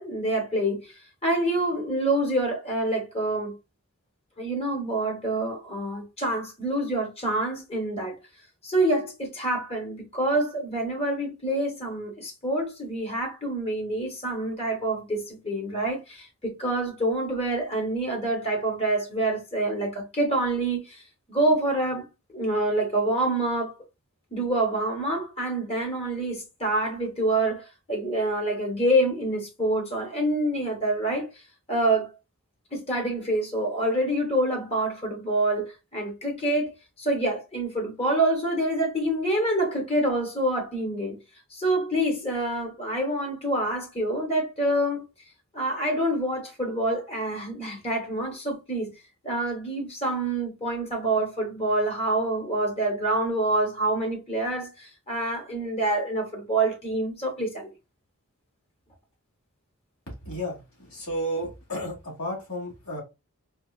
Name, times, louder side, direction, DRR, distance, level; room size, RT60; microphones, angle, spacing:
voice 1, 0.0-3.6 4.4-8.2 8.6-21.0 21.3-22.1 22.3-23.7 24.3-31.3 31.7-32.1 32.7-36.7 37.0-41.2 41.5-45.1 45.5-48.9 49.2-57.7, right 1 dB, 25° left, 1.1 m, -26 dB
voice 2, 60.2-63.0, equal, 65° left, 2.1 m, -32 dB
4.4 x 2.4 x 2.4 m
head